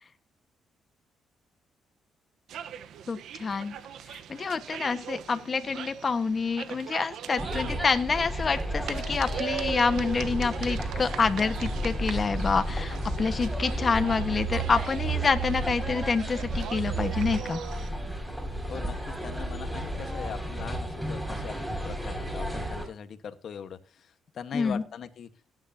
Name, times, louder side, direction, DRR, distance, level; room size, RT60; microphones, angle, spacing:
sound 1, 2.5-17.9, right 9 dB, 75° right, 1.1 m, -41 dB
voice 1, 3.1-3.8 4.1-17.6 24.5-24.8, left 4 dB, 35° left, 10 dB, 1.5 m, -27 dB
sound 2, 7.4-22.9, right 1 dB, 5° right, 5.9 m, -32 dB
voice 2, 18.7-23.8 24.3-25.3, left 7 dB, 60° left, 10 dB, 1.4 m, -40 dB
17.5 x 9.8 x 2.9 m, 0.34 s
cardioid pair, 90°, 0 cm